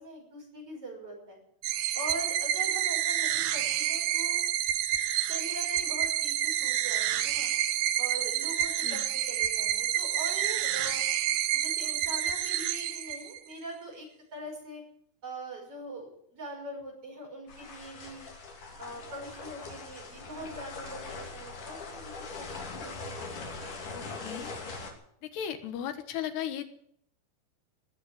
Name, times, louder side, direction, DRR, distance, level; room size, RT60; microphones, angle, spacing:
voice 1, 0.0-1.4 2.0-4.4 5.3-7.5 8.0-11.0 11.5-14.8 15.2-18.3 18.8-24.2, right 1 dB, 35° right, -1 dB, 7.0 m, -42 dB
sound 1, 1.6-13.5, right 11 dB, 80° right, 1.8 m, -29 dB
sound 2, 17.5-24.9, left 3 dB, 55° left, 4.1 m, -41 dB
voice 2, 23.9-24.5 25.2-26.6, left 9 dB, 80° left, 8 dB, 3.4 m, -36 dB
19.0 x 8.1 x 9.5 m, 0.68 s
omnidirectional pair, 4.7 m